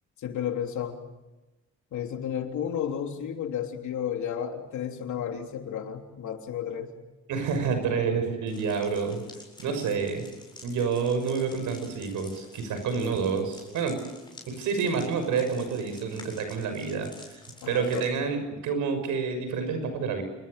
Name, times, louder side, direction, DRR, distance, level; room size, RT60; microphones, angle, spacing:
voice 1, 0.2-1.0 1.9-6.9 17.6-18.3, left 9 dB, 70° left, 4 dB, 3.3 m, -32 dB
voice 2, 7.3-9.2 9.6-10.3 10.6-14.0 14.5-17.1 17.7-20.2, right 5 dB, 85° right, 7 dB, 6.3 m, -28 dB
sound 1, 8.5-18.1, left 2 dB, 15° left, 8.0 m, -50 dB
28.0 x 21.5 x 6.7 m, 1.1 s
cardioid pair, 90°, 30 cm